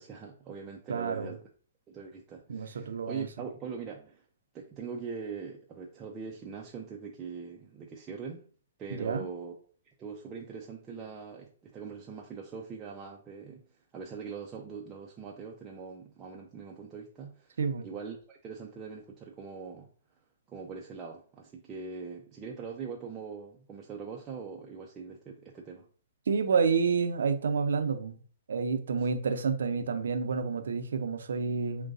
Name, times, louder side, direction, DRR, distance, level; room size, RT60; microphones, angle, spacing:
voice 1, 0.0-1.4 1.9-4.2 4.5-8.5 8.8-9.6 10.0-13.6 13.9-17.6 17.8-19.9 20.5-25.9 29.0-29.1, right 5 dB, 20° right, 0.6 m, -42 dB
voice 2, 0.9-1.3 2.5-3.3 9.0-9.2 17.6-17.9 26.3-28.2 28.5-31.9, right 5 dB, 70° right, 0.6 m, -29 dB
6.0 x 2.3 x 2.6 m
hypercardioid pair, 130°, 0 cm